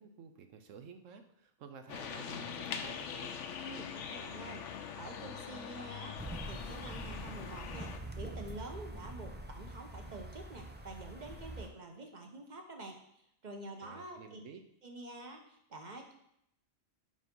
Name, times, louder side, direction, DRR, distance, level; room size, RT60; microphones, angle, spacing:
voice 1, 0.0-3.4 13.8-14.6, right 6 dB, 80° right, 7 dB, 1.1 m, -52 dB
sound 1, 1.9-8.0, left 7 dB, 75° left, 1.0 m, -43 dB
voice 2, 3.6-4.7 4.9-14.4 14.8-16.1, right 2 dB, 40° right, 3 dB, 1.0 m, -48 dB
sound 2, 6.2-11.7, right 1 dB, 15° right, 0.3 m, -45 dB
5.5 x 5.3 x 5.3 m, 0.75 s
omnidirectional pair, 1.3 m